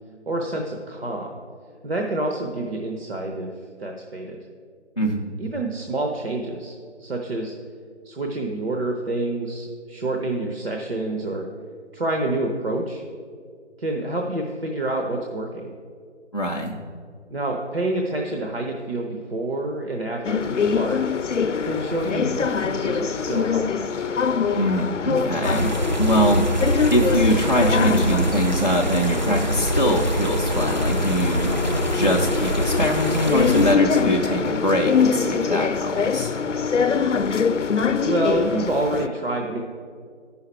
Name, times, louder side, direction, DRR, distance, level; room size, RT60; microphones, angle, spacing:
voice 1, 0.3-1.4 1.8-3.5 3.8-4.4 5.4-7.5 8.0-11.5 11.9-13.0 13.8-15.7 17.3-21.0 21.6-23.9 38.0-39.6, right 2 dB, 55° right, 1 dB, 0.8 m, -28 dB
voice 2, 5.0-5.4 16.3-16.8 24.5-26.4 26.9-31.5 31.9-36.3, equal, 35° left, -1 dB, 0.4 m, -23 dB
sound 1, 20.2-39.1, left 6 dB, 85° left, 0.6 m, -24 dB
sound 2, 25.4-33.8, right 1 dB, 40° right, 0.5 m, -24 dB
9.5 x 5.6 x 4.5 m, 2.1 s
figure-of-eight pair, 165°, 36 cm